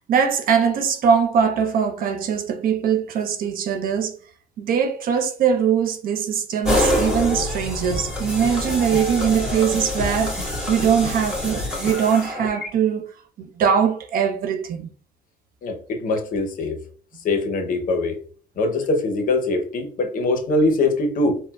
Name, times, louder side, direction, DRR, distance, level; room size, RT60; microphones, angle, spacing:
voice 1, 0.1-4.1 4.6-13.0 13.4-14.9, right 7 dB, 60° right, 0.5 m, -21 dB
sound 1, 6.6-12.7, left 1 dB, 5° right, 1.4 m, -25 dB
voice 2, 15.6-16.8 17.2-18.2 18.6-21.4, left 2 dB, 55° left, 0.7 m, -22 dB
4.2 x 2.0 x 2.2 m
cardioid pair, 110°, 17 cm